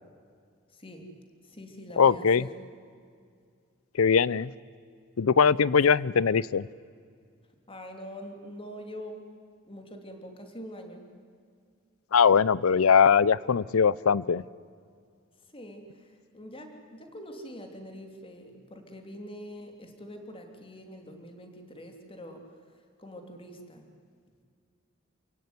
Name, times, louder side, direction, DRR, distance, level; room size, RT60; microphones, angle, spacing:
voice 1, 0.7-1.1 1.4-2.5 7.7-9.2 9.6-11.1 15.5-23.9, equal, 25° left, 4 dB, 3.0 m, -44 dB
voice 2, 2.0-2.5 4.0-4.5 5.2-6.7 12.1-14.4, left 6 dB, 75° left, 21 dB, 0.5 m, -21 dB
29.0 x 16.5 x 9.5 m, 2.2 s
head